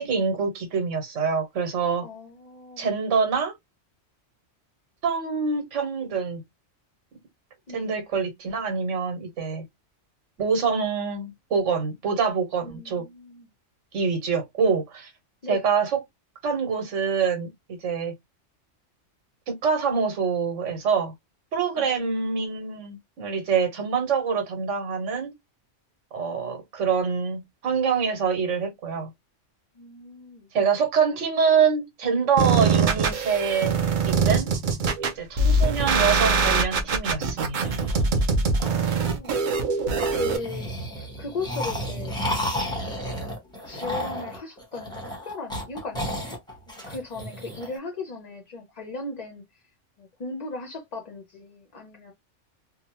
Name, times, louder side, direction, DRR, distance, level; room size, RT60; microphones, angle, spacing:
voice 1, 0.0-2.0 2.8-3.5 5.0-6.4 7.7-9.6 10.4-13.0 13.9-15.1 15.5-16.0 16.4-17.5 17.8-18.1 19.5-21.1 21.5-25.3 26.1-29.1 30.5-33.8 34.1-34.5 35.1-37.7, right 6 dB, 75° right, 1.2 m, -25 dB
voice 2, 2.0-2.9 7.7-7.9 12.6-13.5 15.4-15.7 21.8-22.1 29.7-30.5 38.6-39.4 40.2-42.1 42.5-42.8 43.6-45.0 45.3-46.4 46.7-49.6 50.0-52.1, left 3 dB, 50° left, 0.5 m, -37 dB
sound 1, 32.4-40.4, right 4 dB, 55° right, 0.6 m, -23 dB
sound 2, 37.6-39.5 39.9-47.7, equal, 5° left, 0.8 m, -32 dB
2.7 x 2.1 x 2.9 m
omnidirectional pair, 1.3 m